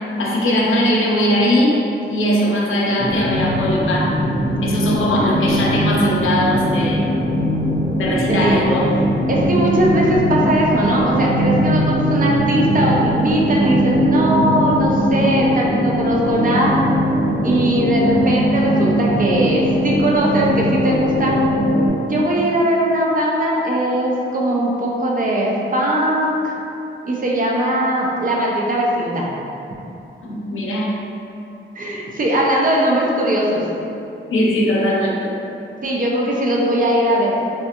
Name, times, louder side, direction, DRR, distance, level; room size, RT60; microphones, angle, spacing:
voice 1, 0.2-1.8 2.1-4.1 4.6-7.0 8.0-8.8 30.2-30.9 34.3-35.3, equal, 75° left, -3 dB, 0.5 m, -19 dB
sound 1, 3.0-21.9, equal, 20° left, 0.7 m, -19 dB
voice 2, 8.3-8.6 9.3-16.7 17.4-21.3 22.0-26.5 27.0-29.3 31.8-33.6 35.8-37.3, right 1 dB, 40° right, -3 dB, 0.5 m, -19 dB
3.4 x 2.4 x 2.8 m, 2.8 s
wide cardioid pair, 155°, 21 cm